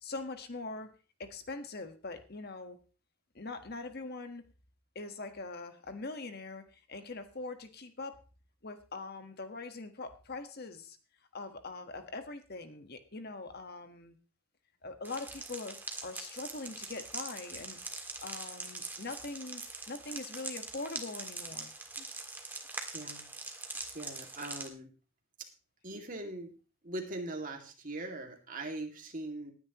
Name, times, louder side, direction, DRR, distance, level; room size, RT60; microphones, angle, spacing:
voice 1, 0.0-0.9 1.2-2.8 3.3-4.4 4.9-8.2 8.6-11.0 11.3-14.2 14.8-17.8 18.2-21.7 22.0-22.1, left 3 dB, 50° left, 8 dB, 1.4 m, -42 dB
sound 1, 15.0-24.7, right 3 dB, 10° right, 1.6 m, -43 dB
voice 2, 22.9-23.3 23.9-24.9 25.8-26.5 26.8-29.5, right 2 dB, 40° right, 2 dB, 2.3 m, -41 dB
19.0 x 9.7 x 3.0 m, 0.34 s
head